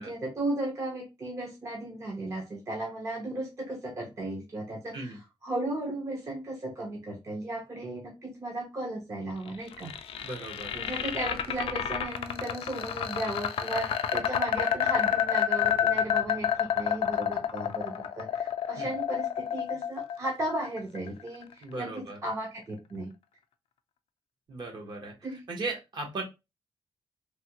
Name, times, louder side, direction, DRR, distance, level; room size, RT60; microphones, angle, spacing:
voice 1, 0.0-9.9 10.7-23.1 25.2-25.4, right 1 dB, 30° right, 0 dB, 0.7 m, -35 dB
sound 1, 9.5-21.5, left 9 dB, 75° left, 0.4 m, -29 dB
voice 2, 10.2-10.7 18.7-18.9 21.6-22.2 24.5-25.1 25.5-26.2, right 3 dB, 50° right, 1 dB, 1.0 m, -37 dB
3.3 x 2.2 x 2.8 m, 0.24 s
wide cardioid pair, 170°, 10 cm